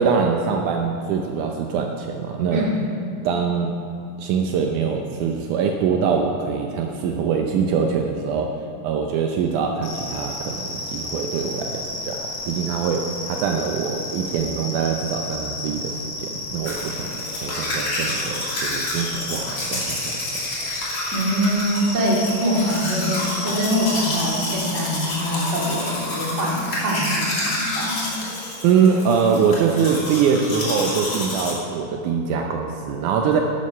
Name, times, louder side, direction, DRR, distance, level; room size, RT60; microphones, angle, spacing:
voice 1, 0.0-2.6 3.2-3.7 4.2-8.5 8.8-17.2 17.4-20.2 28.6-33.4, right 6 dB, 75° right, 2 dB, 2.1 m, -23 dB
voice 2, 2.5-3.0 21.1-28.1, equal, 25° right, -4 dB, 2.0 m, -24 dB
sound 1, 9.8-24.6, left 2 dB, 90° left, 3.6 m, -32 dB
Domestic sounds home sounds, 16.6-31.5, left 1 dB, 35° left, 2.9 m, -29 dB
12.0 x 9.8 x 5.6 m, 2.7 s
omnidirectional pair, 3.8 m